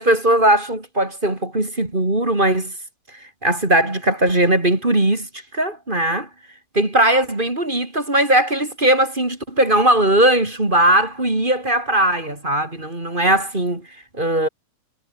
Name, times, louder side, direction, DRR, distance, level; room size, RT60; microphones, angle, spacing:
voice 1, 0.0-2.7 3.1-6.3 6.7-13.9 14.1-14.5, right 1 dB, 15° right, 3.1 m, -19 dB
omnidirectional pair, 3.4 m